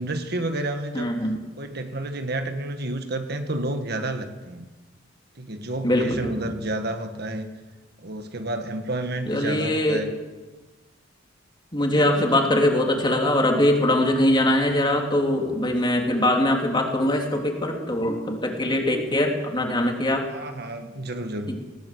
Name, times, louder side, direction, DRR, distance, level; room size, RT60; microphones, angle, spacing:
voice 1, 0.0-1.2 1.6-4.7 5.4-7.5 8.0-10.1 11.9-12.5 20.3-21.6, right 1 dB, 55° right, 7 dB, 1.6 m, -30 dB
voice 2, 0.9-1.4 5.8-6.3 9.3-10.0 11.7-20.3 21.5-21.6, left 1 dB, 25° left, 2 dB, 3.2 m, -22 dB
19.5 x 18.5 x 7.9 m, 1.2 s
head